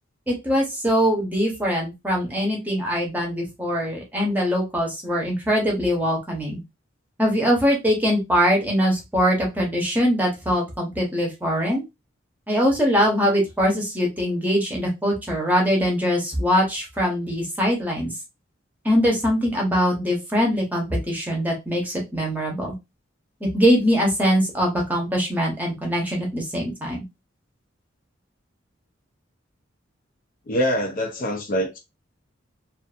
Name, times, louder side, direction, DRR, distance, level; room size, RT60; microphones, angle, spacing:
voice 1, 0.3-6.6 7.2-11.8 12.5-18.1 18.8-22.7 23.5-27.0, equal, 10° right, 0.8 m, -22 dB
voice 2, 30.5-31.8, equal, 45° left, 0.5 m, -24 dB
2.6 x 2.4 x 2.4 m
head